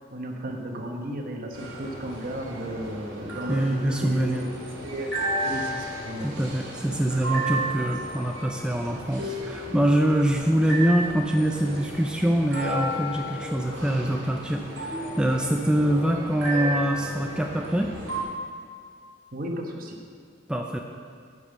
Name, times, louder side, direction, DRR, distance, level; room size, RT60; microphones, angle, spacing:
voice 1, 0.1-4.3 4.5-6.4 19.3-20.0, right 1 dB, 50° right, 1 dB, 1.1 m, -34 dB
sound 1, 1.5-18.2, right 1 dB, 80° right, 2.5 m, -33 dB
voice 2, 3.5-4.4 6.2-17.9 20.5-20.8, right 1 dB, 5° right, 2 dB, 0.4 m, -24 dB
9.5 x 5.3 x 6.1 m, 2.1 s
head